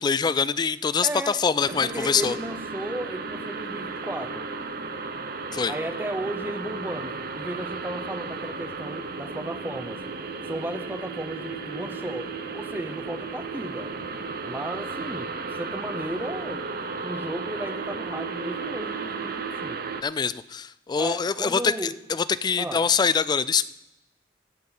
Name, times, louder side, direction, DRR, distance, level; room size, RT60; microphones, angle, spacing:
voice 1, 0.0-2.4 5.5-5.7 20.0-23.7, left 5 dB, 25° left, 16 dB, 0.3 m, -24 dB
voice 2, 1.0-1.4 1.7-4.5 5.7-10.0 10.5-13.9 14.4-15.3 15.6-16.7 17.0-19.8 21.0-21.9 22.6-22.8, right 1 dB, 10° right, 9 dB, 0.6 m, -34 dB
sound 1, 1.6-20.0, right 4 dB, 55° right, 0.8 m, -34 dB
17.0 x 7.4 x 3.9 m, 0.90 s
head